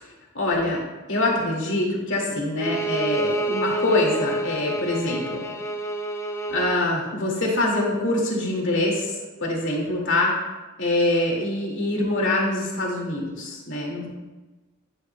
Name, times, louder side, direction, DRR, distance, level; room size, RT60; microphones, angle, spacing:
voice 1, 0.3-0.8 1.1-5.4 6.5-10.3 10.8-14.1, left 2 dB, 65° left, -2 dB, 2.1 m, -24 dB
Bowed string instrument, 2.6-6.8, right 2 dB, 10° left, 0.5 m, -28 dB
10.0 x 9.6 x 2.2 m, 1.2 s
head